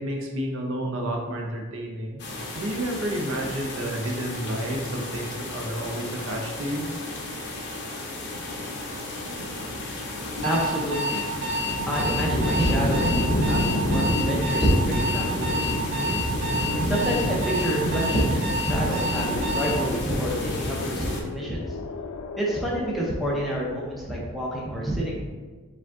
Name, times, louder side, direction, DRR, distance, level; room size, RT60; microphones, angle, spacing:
voice 1, 0.0-2.2 2.6-6.9, right 1 dB, 65° right, 0 dB, 0.6 m, -30 dB
sound 1, 2.2-21.2, left 1 dB, 50° left, 0.6 m, -29 dB
voice 2, 10.4-13.7 13.9-16.3 16.9-21.8 22.4-25.2, equal, ahead, -5 dB, 0.6 m, -28 dB
Alarm, 10.4-19.8, equal, 50° right, 1.2 m, -29 dB
sound 2, 17.6-24.3, left 4 dB, 90° left, 0.4 m, -39 dB
4.9 x 2.4 x 3.6 m, 1.4 s
head